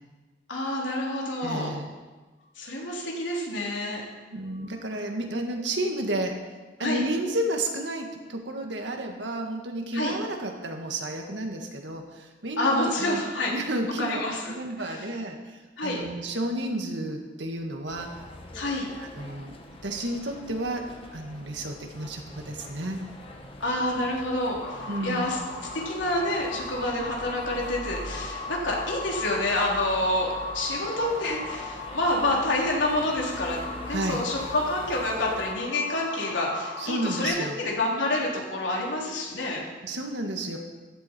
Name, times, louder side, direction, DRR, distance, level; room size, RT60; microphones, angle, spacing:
voice 1, 0.5-1.7 2.5-4.0 4.5-4.7 6.8-7.0 9.9-10.1 12.6-13.5 14.0-15.1 15.8-16.0 18.5-18.9 23.6-25.4 25.7-33.6 33.9-39.6, left 1 dB, 85° left, -2 dB, 3.5 m, -28 dB
voice 2, 1.4-1.9 4.3-6.4 6.8-13.2 13.5-14.2 14.6-15.4 15.8-18.1 19.0-19.5 19.8-20.9 21.1-23.0 24.9-25.3 33.9-34.2 36.8-37.6 39.8-40.6, right 1 dB, 70° right, 3 dB, 1.8 m, -31 dB
sound 1, 17.9-35.5, left 1 dB, 30° left, 1.5 m, -43 dB
sound 2, 24.6-37.3, left 3 dB, 55° left, 2.0 m, -38 dB
14.5 x 12.5 x 4.5 m, 1.3 s
head